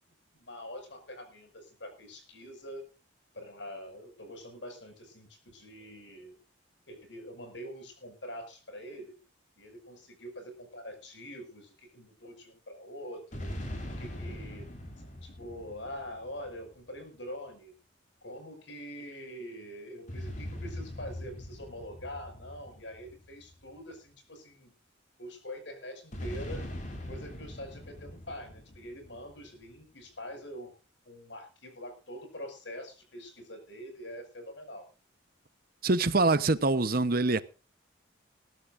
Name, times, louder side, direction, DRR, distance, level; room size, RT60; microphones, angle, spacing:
voice 1, 0.3-2.8 3.3-6.4 6.9-9.2 9.6-13.5 14.0-14.6 15.0-17.7 18.2-24.7 25.2-26.6 27.1-30.7 31.1-34.9, equal, 65° left, 5.8 m, -44 dB
sound 1, 13.3-16.9 20.1-23.7 26.1-29.5, left 1 dB, 40° left, 4.0 m, -41 dB
voice 2, 35.8-37.4, right 3 dB, 50° right, 0.9 m, -24 dB
20.5 x 13.5 x 2.5 m
head